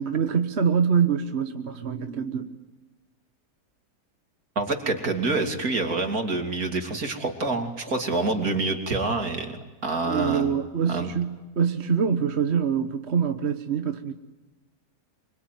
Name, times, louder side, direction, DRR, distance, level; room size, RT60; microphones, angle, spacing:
voice 1, 0.0-2.6 10.0-14.1, right 7 dB, 45° right, 7 dB, 1.4 m, -25 dB
voice 2, 4.6-9.6 9.8-10.5 10.9-11.1, right 3 dB, 60° right, 4 dB, 3.4 m, -27 dB
25.5 x 24.5 x 9.4 m, 1.2 s
omnidirectional pair, 1.7 m